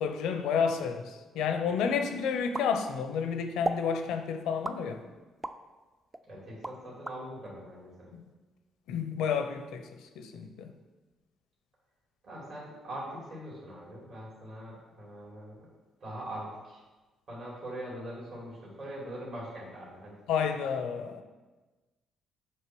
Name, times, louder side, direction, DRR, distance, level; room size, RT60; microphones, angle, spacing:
voice 1, 0.0-5.0 8.9-9.9 10.2-10.7 20.3-21.2, left 6 dB, 90° left, 7 dB, 0.6 m, -30 dB
sound 1, 2.5-3.2 3.6-3.9 4.6-5.6 6.1-7.2, right 2 dB, 20° right, 0.4 m, -36 dB
voice 2, 6.2-8.1 12.2-15.7 16.0-16.8 17.3-20.1, right 1 dB, 60° right, -6 dB, 2.4 m, -42 dB
7.7 x 3.3 x 6.0 m, 1.2 s
cardioid pair, 90°, 0 cm